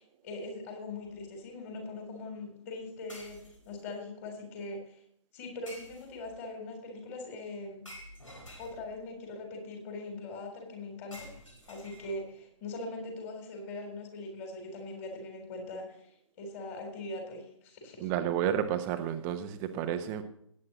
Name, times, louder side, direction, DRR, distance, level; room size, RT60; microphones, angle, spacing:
voice 1, 0.0-3.4 3.7-5.0 5.3-7.8 8.6-11.3 11.7-16.1 16.4-18.1, left 2 dB, 25° left, 3 dB, 3.6 m, -41 dB
sound 1, 1.0-1.2 3.1-3.9 5.7-6.4 7.9-9.1 11.1-12.4, equal, 80° left, 4.1 m, -50 dB
voice 2, 18.0-20.2, right 9 dB, 15° right, 9 dB, 0.7 m, -31 dB
17.5 x 9.6 x 3.0 m, 0.67 s
figure-of-eight pair, 135°, 16 cm